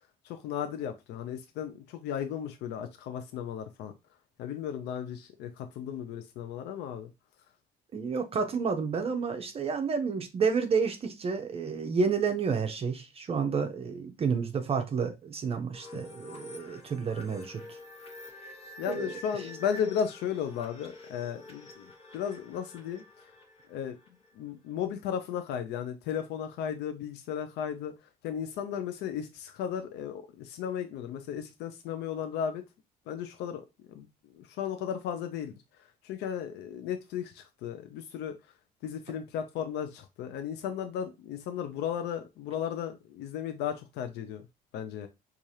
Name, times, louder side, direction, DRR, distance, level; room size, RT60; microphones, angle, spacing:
voice 1, 0.0-3.9 4.4-7.1 15.9-16.0 18.8-23.3 23.7-24.0 24.3-32.6 33.1-33.6 33.9-34.1 34.3-38.4 38.8-44.5 44.7-45.1, left 8 dB, 80° left, 0.5 m, -35 dB
voice 2, 7.9-17.8 18.9-19.1, right 5 dB, 35° right, 0.5 m, -30 dB
sound 1, 15.7-24.3, left 2 dB, 35° left, 1.1 m, -48 dB
4.7 x 2.4 x 2.7 m
cardioid pair, 110°, 17 cm